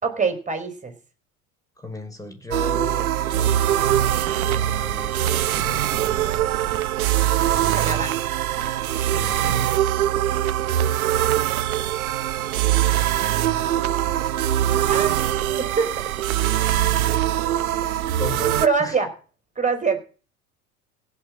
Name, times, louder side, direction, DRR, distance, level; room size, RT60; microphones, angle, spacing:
voice 1, 0.0-0.9 3.3-3.5 7.7-8.1 14.9-15.2 15.6-16.1 18.6-19.1 19.6-20.0, right 5 dB, 15° right, 6 dB, 4.6 m, -24 dB
voice 2, 1.8-6.5 9.1-9.8 18.2-19.0, left 1 dB, 10° left, 6 dB, 5.6 m, -36 dB
sound 1, 2.5-18.7, right 12 dB, 75° right, 0.8 m, -22 dB
15.5 x 7.7 x 8.7 m, 0.38 s
figure-of-eight pair, 75°, 43 cm